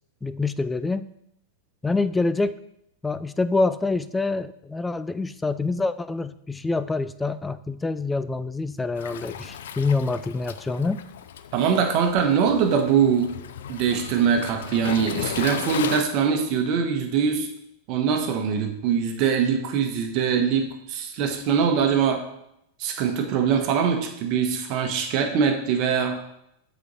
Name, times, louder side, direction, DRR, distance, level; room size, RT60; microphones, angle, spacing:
voice 1, 0.2-1.1 1.8-2.6 3.0-11.0, left 3 dB, 10° left, 13 dB, 0.4 m, -26 dB
Waves surf, 9.0-16.0, left 9 dB, 75° left, 0.4 m, -35 dB
voice 2, 11.5-13.3 13.7-17.5 17.9-22.2 22.8-26.2, right 7 dB, 50° right, 5 dB, 1.2 m, -22 dB
7.6 x 4.3 x 4.1 m, 0.78 s
hypercardioid pair, 105°, 0 cm